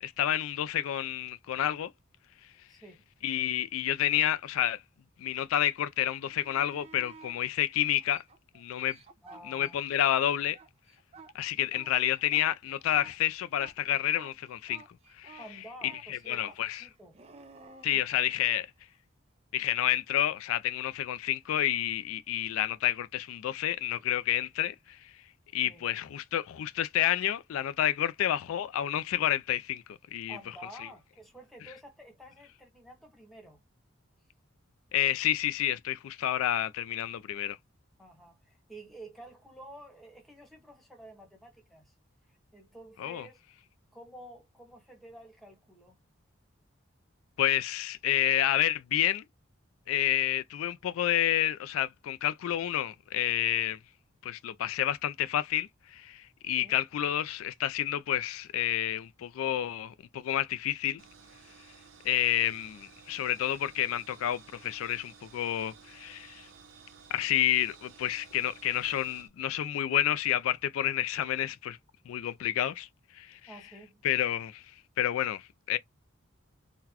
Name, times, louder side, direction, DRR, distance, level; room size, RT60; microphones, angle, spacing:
voice 1, 0.0-1.9 3.2-4.8 5.2-8.2 8.5-9.0 9.5-10.6 11.3-14.8 15.2-15.4 15.8-16.9 17.8-18.7 19.5-25.1 25.5-29.8 30.1-30.4 34.9-37.6 43.0-43.3 47.4-49.2 49.9-53.8 54.2-61.0 62.0-66.5 67.1-71.8 72.1-72.9 73.1-73.4 74.0-74.6 75.0-75.8, left 12 dB, 85° left, 0.3 m, -29 dB
voice 2, 2.7-3.0 9.2-9.8 15.4-17.2 17.9-18.2 25.6-25.8 30.3-33.6 38.0-41.9 42.5-43.4 43.9-46.0 56.6-56.8 73.5-74.0, right 1 dB, ahead, 1.1 m, -50 dB
sound 1, 6.1-7.4 8.0-10.1 10.4-18.6 21.3-21.5, right 4 dB, 30° right, 0.4 m, -53 dB
sound 2, 61.0-69.3, right 5 dB, 70° right, 0.8 m, -54 dB
3.9 x 2.1 x 2.8 m
head